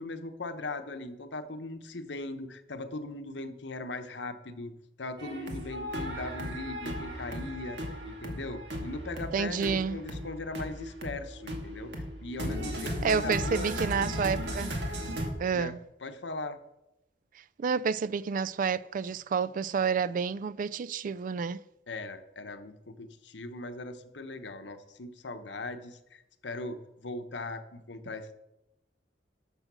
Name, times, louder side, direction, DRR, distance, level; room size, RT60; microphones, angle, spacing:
voice 1, 0.0-4.7 5.0-11.9 12.2-13.7 15.5-15.7 16.0-16.6 21.9-28.3, left 2 dB, 85° left, 1.0 m, -39 dB
sound 1, 5.2-15.3, equal, 75° right, 2.2 m, -36 dB
voice 2, 9.3-10.0 13.0-14.7 15.4-15.8 17.6-21.6, right 6 dB, 50° right, 0.3 m, -29 dB
13.0 x 6.4 x 6.2 m
head